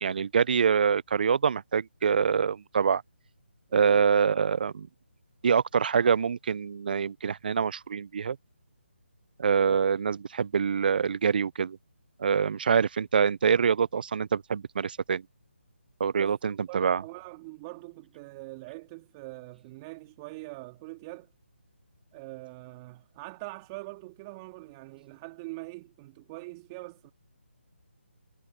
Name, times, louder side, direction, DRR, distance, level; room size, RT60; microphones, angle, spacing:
voice 1, 0.0-3.0 3.7-4.9 5.4-8.4 9.4-11.8 12.2-15.2 16.0-17.0, right 6 dB, 50° right, 0.7 m, -25 dB
voice 2, 3.7-4.1 9.7-9.8 16.2-21.3 22.1-27.1, right 24 dB, 20° right, 2.4 m, -43 dB
figure-of-eight pair, 150°, 7 cm